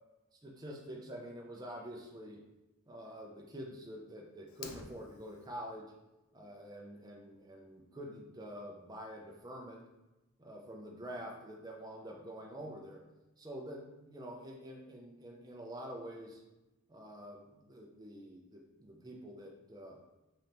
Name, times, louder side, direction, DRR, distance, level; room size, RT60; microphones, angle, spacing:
voice 1, 0.4-2.4 2.9-5.9 6.3-9.8 10.4-13.0 13.4-16.4 16.9-20.0, equal, 20° right, -1 dB, 0.4 m, -47 dB
Fire, 4.5-5.5, left 5 dB, 80° left, 0.4 m, -49 dB
3.8 x 2.9 x 3.3 m, 1.0 s
head